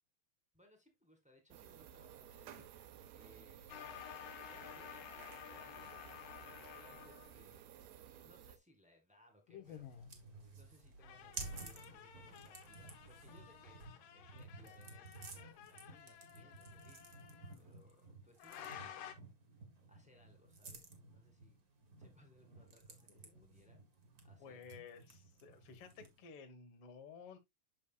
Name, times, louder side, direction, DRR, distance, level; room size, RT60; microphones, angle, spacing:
voice 1, 0.5-4.0 4.4-5.7 6.5-13.9 14.1-19.2 19.5-19.6 19.9-21.6 22.0-23.8 24.2-24.7, equal, 5° right, 0.7 m, -67 dB
sound 1, 1.5-8.6, right 10 dB, 70° right, 1.7 m, -56 dB
sound 2, 3.7-7.6 9.5-10.1 11.0-17.6 18.4-19.1, left 9 dB, 90° left, 2.7 m, -53 dB
sound 3, 9.6-26.3, right 3 dB, 45° right, 1.3 m, -54 dB
voice 2, 23.1-23.7 24.4-27.4, left 6 dB, 55° left, 1.8 m, -55 dB
8.3 x 6.4 x 2.3 m
omnidirectional pair, 3.9 m